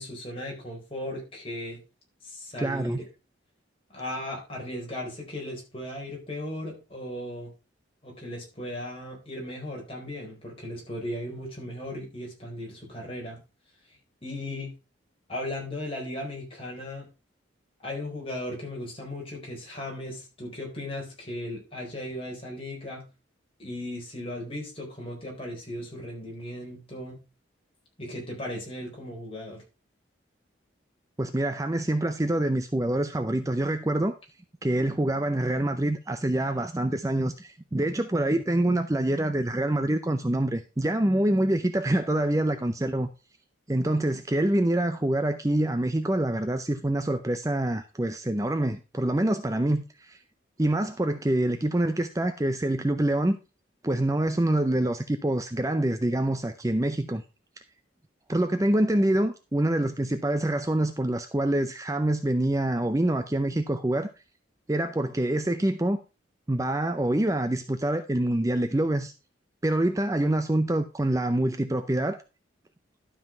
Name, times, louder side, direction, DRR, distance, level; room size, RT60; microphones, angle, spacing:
voice 1, 0.0-1.8 2.2-3.1 3.9-7.5 8.0-13.4 14.2-14.7 15.3-17.1 17.8-23.0 23.6-27.2 28.0-29.6, left 1 dB, 30° left, 4.3 m, -36 dB
voice 2, 2.6-3.0 31.2-34.2 34.6-43.1 43.7-50.2 50.6-53.4 53.8-57.2 58.3-64.1 64.7-66.0 66.5-69.1 69.6-72.2, right 1 dB, 15° right, 0.5 m, -26 dB
12.0 x 5.6 x 4.4 m
head